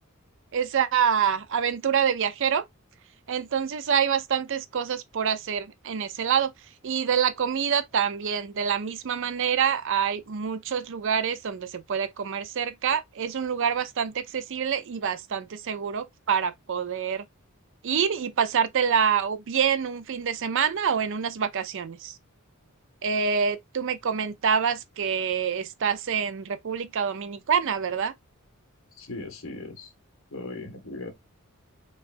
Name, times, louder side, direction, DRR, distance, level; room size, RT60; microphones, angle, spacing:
voice 1, 0.5-2.6 3.3-6.5 6.8-17.2 17.8-22.2 23.0-28.1, right 7 dB, 60° right, 0.5 m, -26 dB
voice 2, 29.0-29.9 30.3-31.1, left 2 dB, 65° left, 1.1 m, -38 dB
4.9 x 2.4 x 2.5 m
head